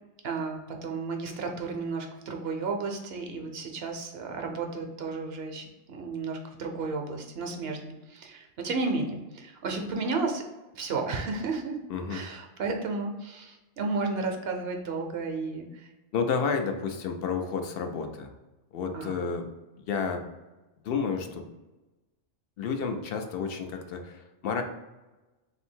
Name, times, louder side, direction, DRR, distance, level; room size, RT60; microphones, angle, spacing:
voice 1, 0.2-10.4 10.7-11.8 12.1-15.9 18.9-19.2, right 3 dB, 60° right, 3 dB, 0.8 m, -33 dB
voice 2, 11.9-12.4 16.1-18.3 18.7-19.5 19.8-20.3 20.8-21.5 22.6-24.6, left 5 dB, 60° left, 5 dB, 0.7 m, -31 dB
3.4 x 2.7 x 4.4 m, 1.1 s
omnidirectional pair, 1.2 m